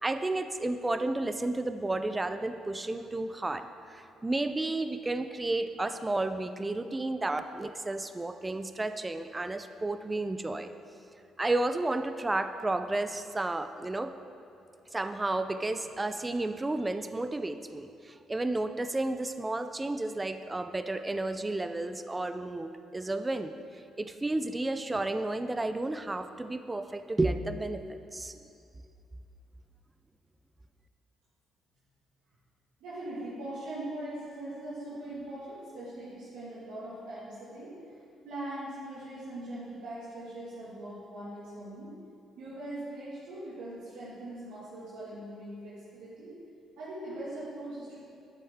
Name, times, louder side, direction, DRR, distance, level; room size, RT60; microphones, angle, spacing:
voice 1, 0.0-10.7 11.4-14.1 14.9-23.5 24.0-28.4, right 2 dB, 20° right, 9 dB, 0.5 m, -32 dB
voice 2, 32.8-37.7 38.2-41.9 42.4-46.3 46.8-48.0, right 1 dB, 85° right, -10 dB, 2.0 m, -41 dB
10.0 x 7.5 x 3.7 m, 2.5 s
supercardioid pair, 65°, 0 cm